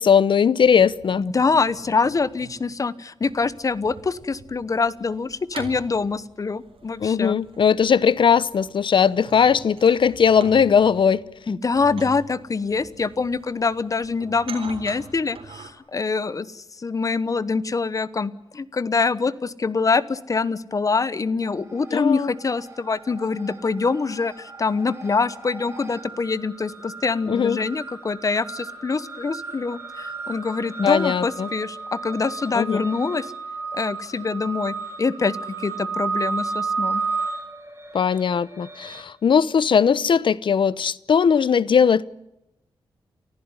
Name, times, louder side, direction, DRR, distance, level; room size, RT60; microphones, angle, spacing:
voice 1, 0.0-1.2 7.0-11.2 21.9-22.3 27.3-27.6 30.8-31.5 32.5-32.8 37.9-42.0, left 7 dB, 60° left, 0.8 m, -19 dB
sound 1, 0.6-2.7 3.2-15.7, right 5 dB, 75° right, 4.1 m, -44 dB
voice 2, 1.2-7.4 11.5-33.3 33.7-37.0, left 4 dB, 35° left, 1.1 m, -25 dB
sound 2, 21.5-22.1 22.4-39.0, right 4 dB, 30° right, 5.0 m, -33 dB
30.0 x 15.0 x 9.8 m
wide cardioid pair, 120°, 9 cm